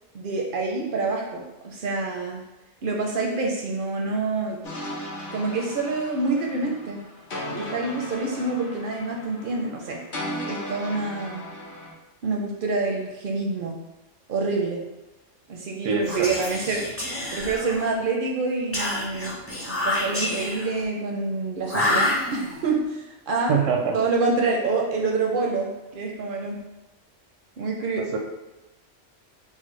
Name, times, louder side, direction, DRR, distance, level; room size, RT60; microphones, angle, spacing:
voice 1, 0.1-2.4 2.8-4.6 5.3-7.0 7.5-10.0 10.5-11.4 12.2-13.8 14.3-14.8 15.5-16.8 17.3-19.4 19.6-23.5 23.9-26.6 27.6-28.2, right 3 dB, 60° right, 0 dB, 0.6 m, -27 dB
sound 1, 4.6-11.9, left 1 dB, 50° left, 0.9 m, -36 dB
voice 2, 15.8-16.3 23.5-24.0 28.1-28.2, right 5 dB, 85° right, 1 dB, 1.0 m, -23 dB
Whispering, 16.0-18.0 18.7-20.8 21.7-22.7, left 1 dB, 20° left, 0.4 m, -28 dB
4.7 x 2.0 x 3.1 m, 1.0 s
omnidirectional pair, 1.2 m